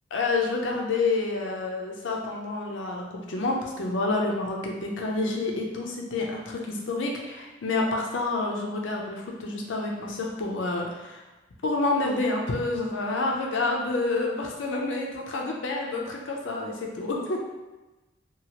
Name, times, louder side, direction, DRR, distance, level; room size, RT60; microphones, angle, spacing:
voice 1, 0.1-11.2 11.6-17.4, left 3 dB, 80° left, 0 dB, 0.5 m, -28 dB
2.9 x 2.3 x 2.9 m, 1.1 s
head